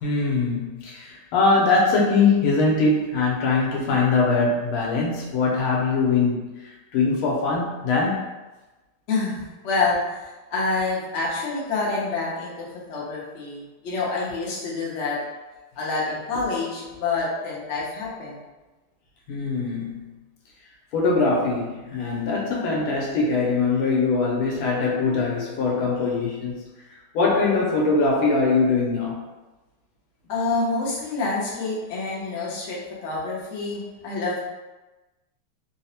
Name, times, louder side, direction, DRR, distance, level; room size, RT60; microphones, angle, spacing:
voice 1, 0.0-6.5 6.9-8.3 19.3-19.9 20.9-26.5 27.1-29.2, left 3 dB, 85° left, -2 dB, 1.6 m, -22 dB
voice 2, 9.1-15.2 15.8-18.4 30.3-34.4, left 3 dB, 70° left, -5 dB, 0.6 m, -27 dB
3.7 x 2.0 x 2.8 m, 1.1 s
omnidirectional pair, 2.3 m